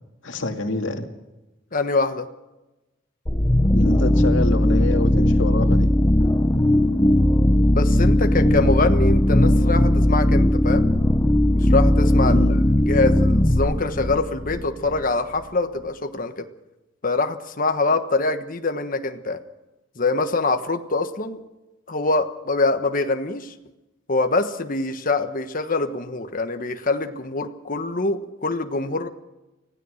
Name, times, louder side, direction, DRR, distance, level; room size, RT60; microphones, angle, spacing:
voice 1, 0.2-1.1 3.7-5.9 12.2-12.6, left 2 dB, 70° left, 5 dB, 2.3 m, -26 dB
voice 2, 1.7-2.3 7.7-10.9 11.5-12.5 12.9-16.5 17.0-19.4 20.0-21.4 21.9-23.5 24.1-29.1, left 3 dB, 45° left, 7 dB, 1.3 m, -24 dB
sound 1, 3.3-15.0, left 1 dB, 15° left, 0.8 m, -18 dB
25.5 x 16.5 x 6.5 m, 1.0 s
head